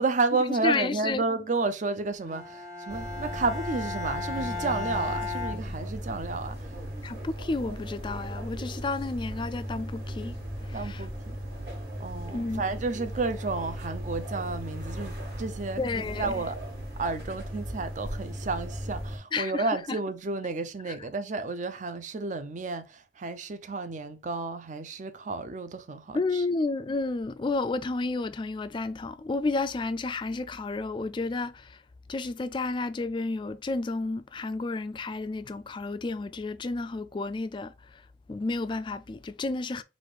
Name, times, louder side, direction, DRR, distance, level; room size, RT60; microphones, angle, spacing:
voice 1, 0.0-6.8 10.7-11.4 12.0-16.6 17.0-26.4, right 3 dB, 45° right, 0.5 m, -31 dB
voice 2, 0.6-1.2 7.0-10.4 10.6-11.0 12.3-12.6 15.8-16.3 19.3-20.0 26.1-31.8 32.1-38.0 38.3-39.8, left 3 dB, 25° left, 0.3 m, -31 dB
Bowed string instrument, 2.3-6.4, left 4 dB, 20° right, 1.0 m, -36 dB
sound 1, 2.9-19.2, equal, 70° right, 2.1 m, -37 dB
4.1 x 2.5 x 4.6 m
head